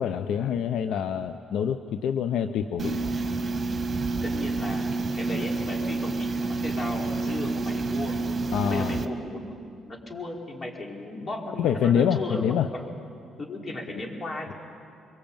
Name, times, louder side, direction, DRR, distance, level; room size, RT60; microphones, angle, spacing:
voice 1, 0.0-3.0 8.5-9.0 11.6-12.7, left 8 dB, 75° left, 10 dB, 0.8 m, -26 dB
sound 1, 2.8-9.1, right 3 dB, 40° right, 1.7 m, -29 dB
voice 2, 4.1-8.2 8.6-9.5 9.9-12.9 13.4-14.5, left 2 dB, 35° left, 0 dB, 5.1 m, -35 dB
24.0 x 23.5 x 9.0 m, 2.4 s
supercardioid pair, 75°, 0 cm